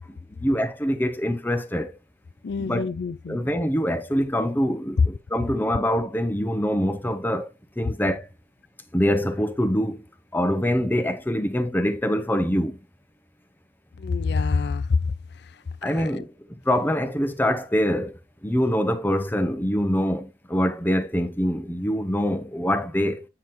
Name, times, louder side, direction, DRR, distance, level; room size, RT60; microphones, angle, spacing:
voice 1, 0.1-1.9 2.6-2.9 3.3-7.5 7.8-8.3 8.9-10.0 10.3-12.8 15.8-23.3, equal, 10° left, 0.9 m, -24 dB
voice 2, 2.4-3.4 5.0-5.1 14.0-16.3, left 4 dB, 65° left, 0.4 m, -26 dB
9.4 x 5.9 x 3.1 m
head